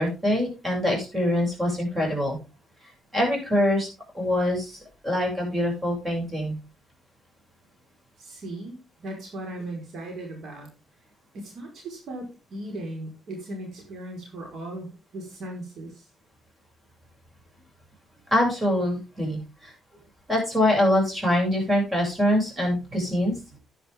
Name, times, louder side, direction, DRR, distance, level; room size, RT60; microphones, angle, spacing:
voice 1, 0.0-2.4 3.1-3.9 4.1-6.6 18.3-19.7 20.3-23.4, left 1 dB, 15° right, 1 dB, 7.6 m, -24 dB
voice 2, 8.2-10.7 11.3-14.9 15.1-16.1, right 1 dB, 60° right, 1 dB, 5.1 m, -37 dB
11.5 x 10.0 x 3.8 m, 0.30 s
cardioid pair, 90°, 0 cm